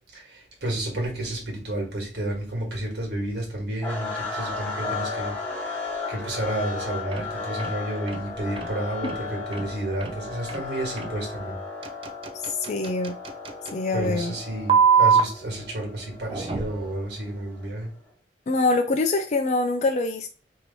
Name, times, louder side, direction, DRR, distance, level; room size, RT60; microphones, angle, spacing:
voice 1, 0.1-5.3 5.6-11.6 13.9-17.9, right 1 dB, 65° right, 1.6 m, -31 dB
sound 1, 3.8-17.9, left 3 dB, 10° left, 1.4 m, -35 dB
sound 2, 7.1-7.3 7.6-7.7 8.1-8.2 8.6-8.7 9.0-9.2 9.5-9.7 10.0-10.1 10.5-10.6 11.0-11.1 11.8-13.7 14.7-15.2 16.2-16.9, right 6 dB, 30° right, 0.4 m, -23 dB
voice 2, 12.5-13.2 13.7-14.3 18.5-20.3, left 3 dB, 40° left, 0.4 m, -24 dB
3.1 x 2.8 x 4.1 m
head